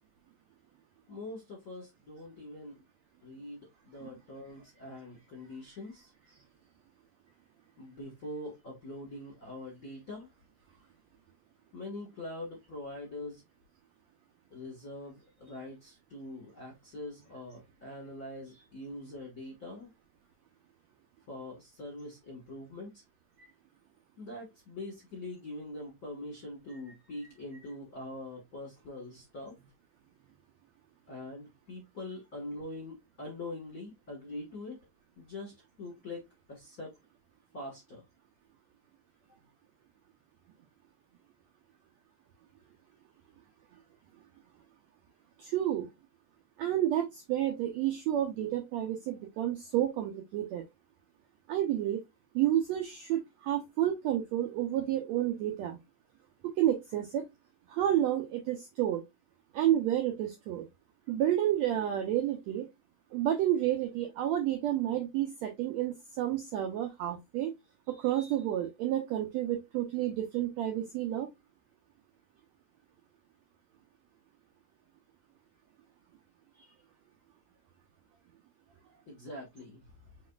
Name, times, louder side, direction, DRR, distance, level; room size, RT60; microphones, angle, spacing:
voice 1, 1.1-2.8 3.2-6.1 7.8-10.3 11.7-13.4 14.5-19.9 21.3-23.0 24.2-29.5 31.1-34.8 35.2-36.2 36.5-36.9 37.5-38.0 79.1-79.8, left 2 dB, 45° left, 1.3 m, -43 dB
voice 2, 45.4-45.9 46.6-50.6 51.5-52.0 52.3-55.8 56.4-57.3 57.7-59.0 59.5-60.6 61.1-62.7 63.1-67.5 67.9-71.3, right 12 dB, 80° right, 1.6 m, -30 dB
4.8 x 4.1 x 2.3 m
omnidirectional pair, 3.9 m